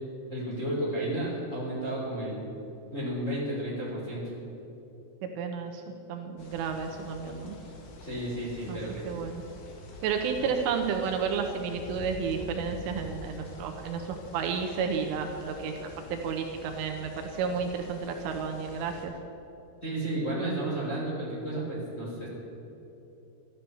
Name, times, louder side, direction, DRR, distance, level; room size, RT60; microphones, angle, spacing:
voice 1, 0.3-2.4 2.9-4.3 8.0-9.0 10.4-10.5 19.8-22.3, right 1 dB, 20° left, -6 dB, 3.0 m, -32 dB
voice 2, 5.2-5.8 6.1-7.6 8.7-8.8 9.0-9.4 10.0-19.1, right 6 dB, 80° right, 4 dB, 3.2 m, -32 dB
sound 1, 6.4-19.1, left 3 dB, 60° left, 2.2 m, -46 dB
13.0 x 11.5 x 6.9 m, 3.0 s
omnidirectional pair, 6.0 m